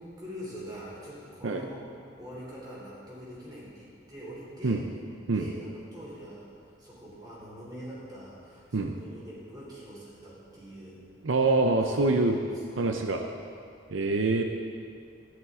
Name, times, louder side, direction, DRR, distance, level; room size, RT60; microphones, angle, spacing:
voice 1, 0.0-1.8 2.2-4.8 5.2-11.0 11.9-12.4 12.8-12.9, equal, 20° right, -6 dB, 3.3 m, -44 dB
voice 2, 11.2-12.4 12.8-13.2 13.9-14.4, right 3 dB, 80° right, 4 dB, 0.7 m, -25 dB
13.5 x 11.0 x 3.7 m, 2.3 s
head